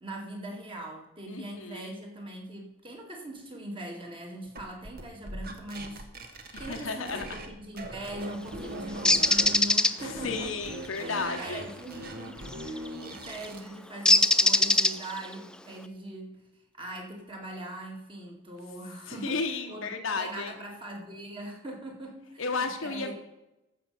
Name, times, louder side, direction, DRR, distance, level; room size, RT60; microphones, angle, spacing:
voice 1, 0.0-10.5 11.0-16.4 16.7-22.4 22.8-23.1, right 1 dB, 25° right, 1 dB, 2.2 m, -41 dB
voice 2, 1.3-1.9 6.5-7.4 10.2-11.6 19.1-20.5 22.4-23.1, left 4 dB, 70° left, 5 dB, 1.0 m, -33 dB
sound 1, 4.6-7.5 7.8-9.6 10.0-13.7, right 1 dB, 45° right, 1.4 m, -40 dB
Bird, 9.1-9.9 12.5-12.8 14.1-15.3, left 2 dB, 5° left, 0.3 m, -21 dB
14.5 x 5.5 x 6.9 m, 0.97 s
head